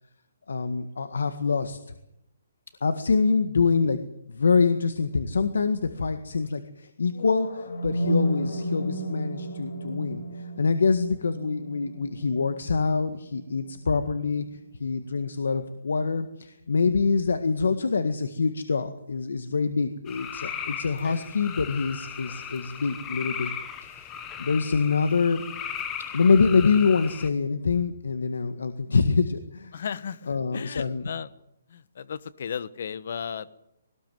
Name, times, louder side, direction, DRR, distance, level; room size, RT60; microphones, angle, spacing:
voice 1, 0.5-1.8 2.8-4.0 4.3-10.2 10.6-14.5 14.8-23.5 23.8-25.4 26.1-29.7 30.3-31.1, left 4 dB, 90° left, 9 dB, 1.8 m, -25 dB
sound 1, 7.1-15.1, equal, 65° left, 6.6 m, -33 dB
sound 2, 20.1-27.3, left 8 dB, 15° left, 1.4 m, -37 dB
voice 2, 29.7-31.3 31.7-33.6, left 7 dB, 50° left, 17 dB, 1.2 m, -35 dB
20.5 x 19.0 x 9.3 m, 0.81 s
hypercardioid pair, 170°, 0 cm